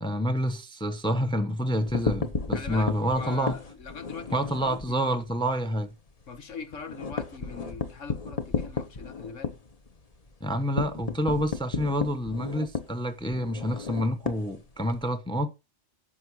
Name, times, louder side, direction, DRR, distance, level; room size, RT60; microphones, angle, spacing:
voice 1, 0.0-3.6 4.3-5.9 10.4-15.5, equal, 5° left, 0.8 m, -28 dB
sound 1, 1.7-4.9 5.3-5.5 5.8-5.9 6.2-15.1, left 5 dB, 35° left, 1.0 m, -33 dB
voice 2, 2.5-5.1 6.3-9.6, left 5 dB, 80° left, 1.7 m, -42 dB
11.0 x 7.0 x 4.7 m
omnidirectional pair, 1.3 m